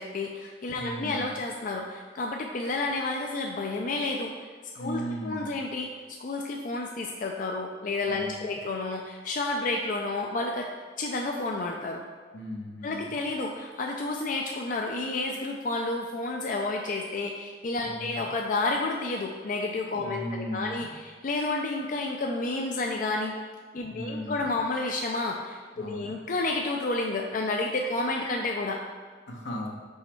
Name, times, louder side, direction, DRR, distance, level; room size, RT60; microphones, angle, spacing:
voice 1, 0.0-4.5 4.7-10.7 11.0-12.0 12.8-23.3 23.7-28.8, left 2 dB, 50° left, 1 dB, 0.4 m, -30 dB
voice 2, 0.7-1.4 4.8-5.5 8.1-8.6 12.3-13.2 17.8-18.2 20.0-20.9 23.8-24.5 25.7-26.1 29.3-29.7, equal, 80° left, 0 dB, 1.1 m, -37 dB
5.6 x 5.1 x 4.4 m, 1.5 s
head